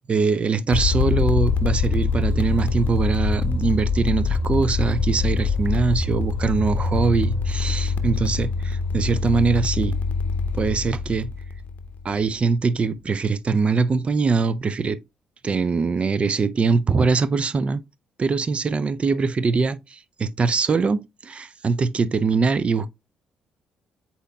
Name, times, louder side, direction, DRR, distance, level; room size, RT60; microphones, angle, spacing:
voice 1, 0.1-10.0 10.5-11.3 12.0-15.0 15.4-17.8 18.2-22.9, right 4 dB, 40° right, 0.4 m, -22 dB
sound 1, 0.7-12.4, left 4 dB, 65° left, 0.6 m, -24 dB
8.1 x 2.9 x 2.3 m
hypercardioid pair, 50°, 3 cm